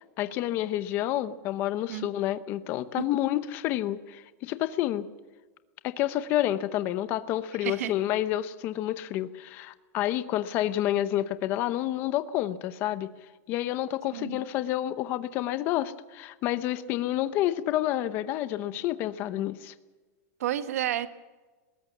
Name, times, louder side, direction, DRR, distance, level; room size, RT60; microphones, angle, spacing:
voice 1, 0.2-5.1 5.8-13.1 13.5-19.7, left 13 dB, 25° left, 13 dB, 0.8 m, -29 dB
voice 2, 7.6-7.9 14.1-14.4 20.4-21.1, right 12 dB, 65° right, 11 dB, 1.2 m, -31 dB
20.5 x 18.5 x 7.3 m, 1.2 s
supercardioid pair, 180°, 9 cm